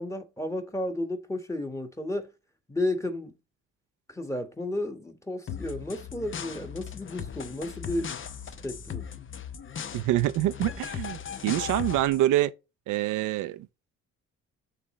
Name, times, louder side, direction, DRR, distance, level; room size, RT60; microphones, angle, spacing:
voice 1, 0.0-2.3 2.7-3.3 4.1-8.1 8.6-9.1, left 1 dB, 10° left, 1.4 m, -32 dB
sound 1, 5.5-12.2, left 8 dB, 40° left, 0.8 m, -38 dB
voice 2, 9.9-12.5 12.9-13.7, right 14 dB, 85° right, 0.6 m, -26 dB
9.8 x 3.4 x 3.1 m
cardioid pair, 90°, 30 cm